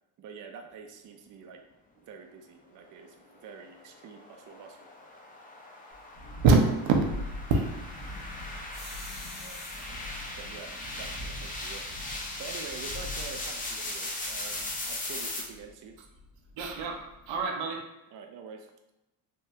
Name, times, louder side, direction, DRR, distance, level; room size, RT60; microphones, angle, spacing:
voice 1, 0.2-1.6 2.0-4.9 9.4-9.6 10.4-11.9 12.4-16.0 18.1-18.9, right 5 dB, 45° right, 4 dB, 0.4 m, -46 dB
sound 1, 3.4-15.4, left 1 dB, 20° left, 0.6 m, -39 dB
Thunderstorm, 5.9-17.5, left 1 dB, 75° left, 1.0 m, -44 dB
voice 2, 6.4-7.1 7.5-7.8 16.6-17.8, right 3 dB, 80° right, 2 dB, 0.7 m, -24 dB
sound 2, 8.7-10.3 11.0-11.1 11.6-11.7 11.9-12.5, left 2 dB, 50° left, 1.1 m, -46 dB
3.3 x 2.1 x 2.7 m, 0.92 s
supercardioid pair, 80°, 46 cm